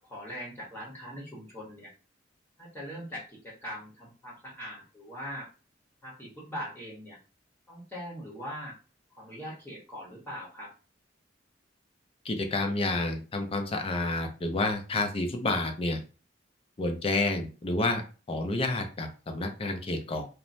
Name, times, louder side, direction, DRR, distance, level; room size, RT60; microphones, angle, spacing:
voice 1, 0.0-1.9 2.6-5.5 6.0-7.2 7.7-8.8 9.1-10.7, equal, 10° left, -6 dB, 0.9 m, -41 dB
voice 2, 12.2-16.0 16.8-18.0 18.3-20.3, left 2 dB, 30° left, 5 dB, 0.5 m, -29 dB
3.1 x 2.1 x 2.6 m, 0.35 s
head